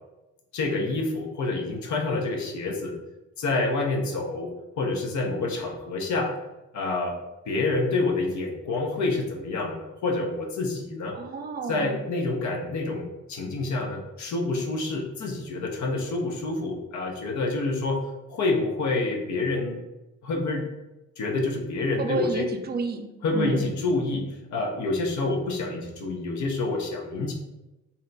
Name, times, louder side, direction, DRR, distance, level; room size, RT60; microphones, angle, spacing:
voice 1, 0.5-2.9 3.4-4.5 4.8-6.3 6.7-7.2 7.5-11.2 11.7-18.0 18.3-19.8 20.2-20.6 21.2-22.5 23.2-27.3, left 3 dB, 65° left, 2 dB, 0.8 m, -27 dB
voice 2, 11.1-12.0 22.0-23.6, right 4 dB, 30° right, 5 dB, 0.5 m, -31 dB
2.8 x 2.1 x 3.8 m, 1.0 s
supercardioid pair, 70°, 31 cm